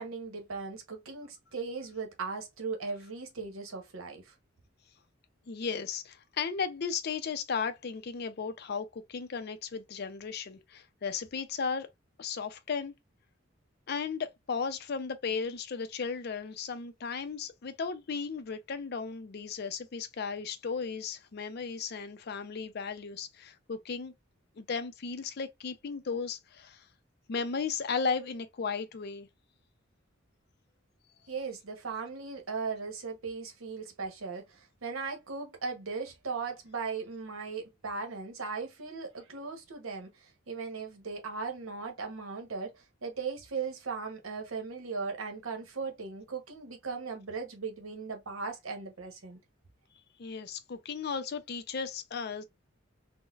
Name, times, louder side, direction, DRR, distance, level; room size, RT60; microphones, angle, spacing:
voice 1, 0.0-4.3 31.3-49.4, right 4 dB, 80° right, 0.9 m, -38 dB
voice 2, 5.5-11.9 12.2-12.9 13.9-24.1 24.6-26.8 27.3-29.3 50.2-52.4, left 5 dB, 50° left, 0.4 m, -35 dB
3.8 x 2.1 x 2.3 m
head